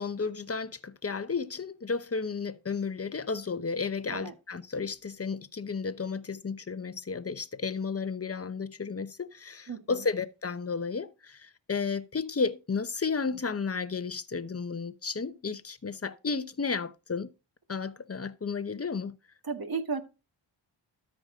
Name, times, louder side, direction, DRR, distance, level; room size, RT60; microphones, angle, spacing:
voice 1, 0.0-17.3 17.7-19.1, left 5 dB, 30° left, 1.0 m, -33 dB
voice 2, 9.7-10.0 19.4-20.0, right 4 dB, 45° right, 1.8 m, -34 dB
13.0 x 5.0 x 3.7 m
cardioid pair, 50°, 50 cm